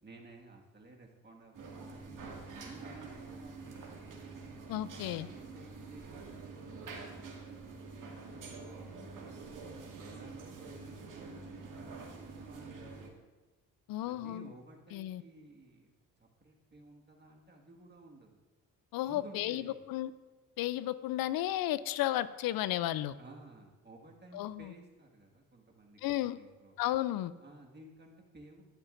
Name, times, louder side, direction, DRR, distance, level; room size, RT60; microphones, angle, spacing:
voice 1, 0.0-4.0 4.9-7.3 8.1-8.5 9.0-9.7 10.0-13.1 14.0-15.9 16.2-18.4 19.0-19.8 23.2-26.0 26.3-26.8 27.4-28.6, right 2 dB, 30° right, 0 dB, 1.9 m, -55 dB
sound 1, 1.5-13.1, right 4 dB, 60° right, 2.1 m, -47 dB
voice 2, 4.7-5.3 13.9-14.5 14.9-15.2 18.9-20.1 20.6-23.1 24.3-24.7 26.0-26.4 26.8-27.3, left 14 dB, 75° left, 16 dB, 0.5 m, -33 dB
11.5 x 9.7 x 2.6 m, 1.2 s
supercardioid pair, 65°, 35 cm